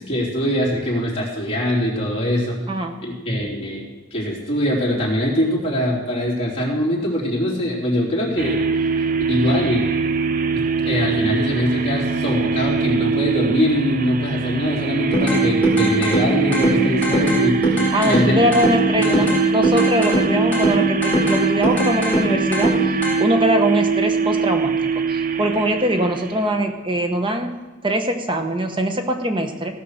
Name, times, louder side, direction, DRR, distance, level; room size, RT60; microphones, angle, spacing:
voice 1, 0.0-2.7 2.9-8.6 9.3-9.9 10.5-19.2, equal, 30° left, -4 dB, 3.4 m, -23 dB
voice 2, 2.7-3.0 17.9-22.7 23.2-24.8 25.1-27.5 27.8-29.8, right 1 dB, 25° right, 5 dB, 1.1 m, -22 dB
sound 1, 8.4-26.7, right 5 dB, 45° right, 0.6 m, -23 dB
sound 2, 15.1-23.1, right 1 dB, 10° left, 3.7 m, -21 dB
16.5 x 5.6 x 6.6 m, 1.2 s
head